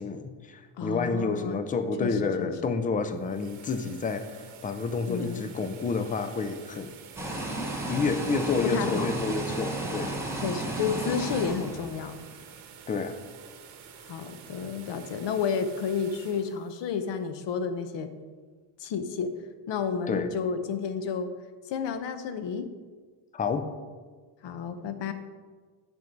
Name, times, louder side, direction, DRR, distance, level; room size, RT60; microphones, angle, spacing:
voice 1, 0.0-6.9 7.9-10.2 12.9-13.2 20.1-20.3 23.3-23.7, left 4 dB, 20° left, 9 dB, 0.4 m, -29 dB
voice 2, 0.8-1.6 2.0-2.5 5.1-5.5 8.6-9.1 10.4-12.2 14.1-18.1 18.8-19.3 19.7-21.3 21.7-22.7 24.4-25.1, left 6 dB, 60° left, 9 dB, 0.9 m, -31 dB
sound 1, 3.0-17.9, right 7 dB, 75° right, 1.3 m, -50 dB
sound 2, 7.2-12.3, right 2 dB, 5° right, 1.2 m, -33 dB
9.5 x 5.9 x 5.2 m, 1.5 s
cardioid pair, 150°, 49 cm